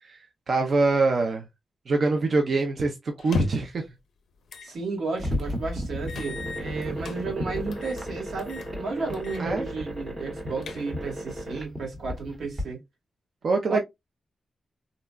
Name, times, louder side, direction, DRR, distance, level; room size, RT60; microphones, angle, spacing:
voice 1, 0.5-1.4 1.9-3.8 9.4-9.7 13.4-13.8, right 3 dB, 50° right, 0.5 m, -24 dB
sound 1, 3.2-3.8 4.5-4.7 5.1-5.2 6.1-7.2 7.7-8.1 8.4-8.7 9.1-9.5 9.8-9.9 10.4-11.1, left 3 dB, 80° left, 0.4 m, -33 dB
voice 2, 4.6-12.8 13.7-13.8, right 4 dB, 85° right, 1.6 m, -33 dB
sound 2, 5.2-12.6, equal, 25° right, 0.9 m, -34 dB
3.8 x 2.2 x 2.3 m
wide cardioid pair, 170°, 0 cm